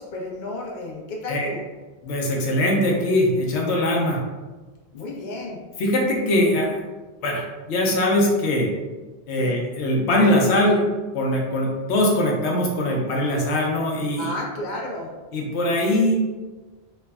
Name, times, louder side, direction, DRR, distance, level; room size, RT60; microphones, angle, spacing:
voice 1, 0.0-1.6 4.9-5.6 9.4-9.5 14.2-15.1, left 1 dB, 55° left, -2 dB, 0.6 m, -32 dB
voice 2, 2.0-4.2 5.8-6.8 7.2-8.7 9.3-10.9 11.1-14.3 15.3-16.1, left 1 dB, 90° left, -1 dB, 0.9 m, -21 dB
3.2 x 2.0 x 2.2 m, 1.3 s
omnidirectional pair, 1.1 m